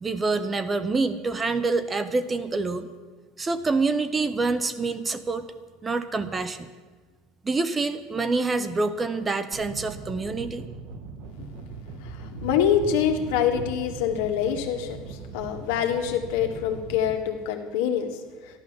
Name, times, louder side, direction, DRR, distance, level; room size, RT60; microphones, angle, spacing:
voice 1, 0.0-2.9 3.4-5.5 5.8-6.7 7.4-10.6, right 3 dB, 15° right, 12 dB, 0.6 m, -26 dB
sound 1, 9.5-17.2, right 4 dB, 50° right, 1.1 m, -40 dB
voice 2, 12.0-18.6, left 8 dB, 80° left, 4 dB, 1.8 m, -26 dB
13.5 x 11.5 x 7.3 m, 1.4 s
cardioid pair, 170°, 0 cm